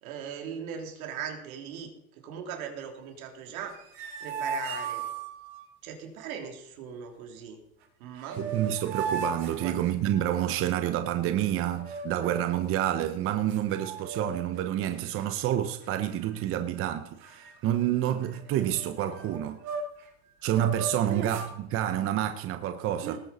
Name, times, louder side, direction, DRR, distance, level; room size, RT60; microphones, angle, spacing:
voice 1, 0.0-1.9 2.2-3.8 4.2-5.1 5.8-7.6 8.0-8.4 9.6-9.8 21.0-21.4 23.0-23.2, right 7 dB, 75° right, 3.3 m, -39 dB
sound 1, 3.6-5.6 7.8-7.9 8.2-10.4 11.7-12.6 13.1-13.2 13.5-14.6 14.9-15.2 15.8-16.4 16.7-16.9 17.2-20.1 20.5-21.5, right 4 dB, 50° right, 4.5 m, -37 dB
voice 2, 8.4-19.6 20.4-23.2, right 11 dB, 30° right, 0.8 m, -28 dB
19.0 x 9.1 x 4.2 m
supercardioid pair, 140°, 43 cm